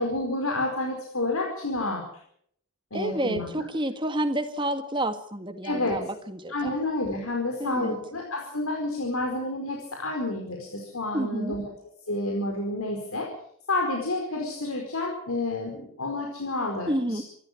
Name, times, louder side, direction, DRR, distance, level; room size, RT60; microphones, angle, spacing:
voice 1, 0.0-2.0 2.9-3.5 5.6-6.0 6.5-11.6 12.1-13.3 13.7-17.2, left 2 dB, 75° left, 1 dB, 4.7 m, -29 dB
voice 2, 2.9-6.7 7.6-8.0 11.1-11.6 16.9-17.2, right 1 dB, 20° right, 8 dB, 1.8 m, -29 dB
26.5 x 13.5 x 8.6 m, 0.67 s
head